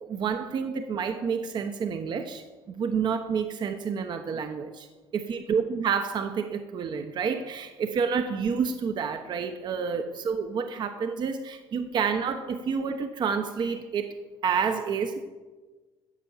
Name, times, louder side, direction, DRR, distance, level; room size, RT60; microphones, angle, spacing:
voice 1, 0.0-4.9 5.1-14.1 14.4-15.2, right 6 dB, 50° right, 7 dB, 0.9 m, -29 dB
12.5 x 7.8 x 7.1 m, 1.3 s
cardioid pair, 115°, 10 cm